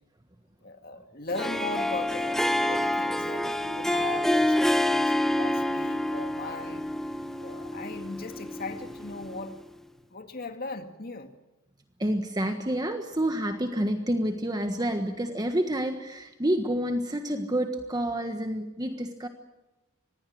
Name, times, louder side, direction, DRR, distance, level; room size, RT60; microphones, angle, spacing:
voice 1, 0.6-6.9 7.4-9.6 10.1-11.3, left 3 dB, 45° left, 6 dB, 2.2 m, -38 dB
Harp, 1.3-9.6, left 1 dB, ahead, 1.0 m, -28 dB
voice 2, 12.0-19.3, right 1 dB, 20° right, 6 dB, 1.4 m, -28 dB
25.5 x 20.5 x 7.8 m, 1.0 s
head